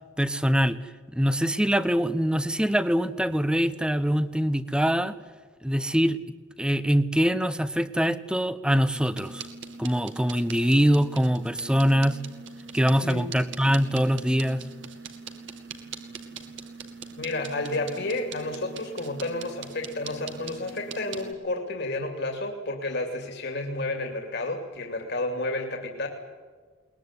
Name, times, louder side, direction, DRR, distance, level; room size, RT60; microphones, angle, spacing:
voice 1, 0.2-0.8 1.1-5.1 5.6-6.2 6.6-9.5 9.8-12.2 12.7-14.6, equal, 5° right, 14 dB, 0.8 m, -23 dB
sound 1, 8.9-21.3, right 5 dB, 65° right, 2.2 m, -42 dB
voice 2, 17.2-26.1, left 2 dB, 60° left, 3 dB, 2.6 m, -31 dB
22.0 x 20.0 x 9.7 m, 1.5 s
head